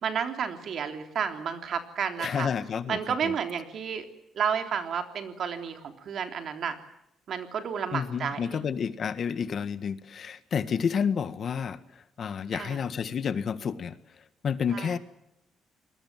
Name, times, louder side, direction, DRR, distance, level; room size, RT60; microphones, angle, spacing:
voice 1, 0.0-2.5 2.9-4.1 4.4-6.8 7.3-8.6 12.5-12.8 14.7-15.0, right 7 dB, 60° right, 6 dB, 3.5 m, -31 dB
voice 2, 2.2-3.0 3.2-3.3 7.9-11.8 12.2-13.9 14.4-15.0, left 7 dB, 55° left, 12 dB, 1.7 m, -30 dB
27.0 x 21.0 x 7.5 m, 0.82 s
cardioid pair, 90°, 0 cm